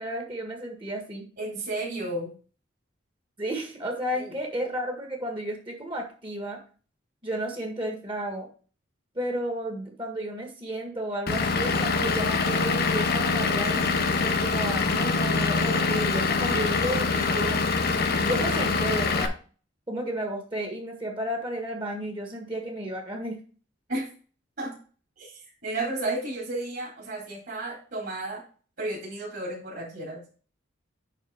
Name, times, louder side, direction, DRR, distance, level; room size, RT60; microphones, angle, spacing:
voice 1, 0.0-1.3 3.4-6.6 7.2-8.5 9.2-17.6 18.2-19.3 19.9-23.4, right 1 dB, 25° right, 2 dB, 1.7 m, -32 dB
voice 2, 1.4-2.3 4.2-4.3 23.9-24.1 24.6-24.7 25.2-28.4 28.8-30.2, right 2 dB, 50° right, -6 dB, 4.1 m, -32 dB
Vehicle / Engine, 11.3-19.3, left 4 dB, 50° left, 0.8 m, -24 dB
9.8 x 3.8 x 5.0 m, 0.40 s
head